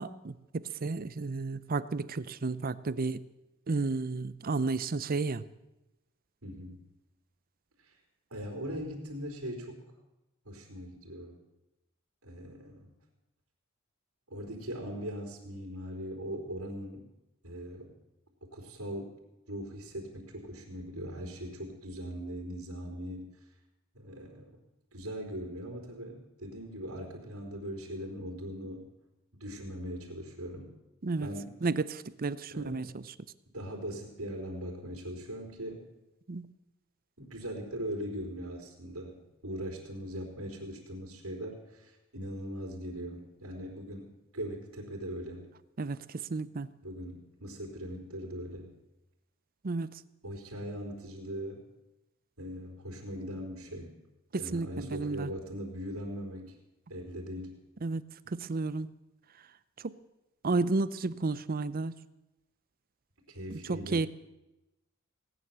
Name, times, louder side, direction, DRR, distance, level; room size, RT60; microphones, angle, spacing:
voice 1, 0.0-3.2 3.7-5.5 31.0-31.3 31.6-33.1 36.3-36.5 45.8-46.7 49.6-50.0 54.3-55.3 57.8-58.9 59.8-60.0 60.4-61.9 63.5-64.1, right 3 dB, 40° right, 16 dB, 0.6 m, -32 dB
voice 2, 6.4-6.8 7.8-8.0 8.3-9.8 10.5-11.4 12.2-12.9 14.3-17.1 17.4-17.9 18.4-19.2 19.5-23.3 23.9-24.6 24.9-28.9 29.4-30.7 31.2-31.5 32.5-32.8 33.5-35.8 37.2-45.5 46.8-48.7 50.2-51.6 52.4-54.0 54.4-56.6 56.9-57.6 63.3-64.0, equal, 80° right, 1 dB, 3.9 m, -40 dB
18.0 x 9.6 x 7.4 m, 0.95 s
head